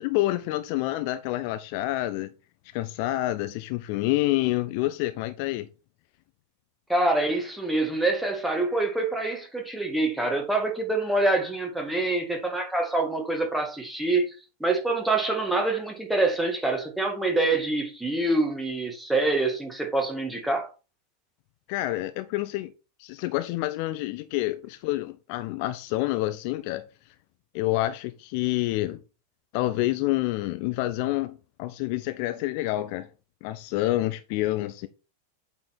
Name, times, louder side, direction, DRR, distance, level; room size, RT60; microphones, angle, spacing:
voice 1, 0.0-2.3 2.7-5.7 21.7-22.7 23.0-26.8 27.5-29.0 29.5-33.1 33.4-34.9, left 17 dB, 45° left, 0.5 m, -28 dB
voice 2, 6.9-14.3 14.6-20.7, right 2 dB, 5° right, 1.9 m, -26 dB
8.4 x 4.2 x 4.3 m
figure-of-eight pair, 90°, 0 cm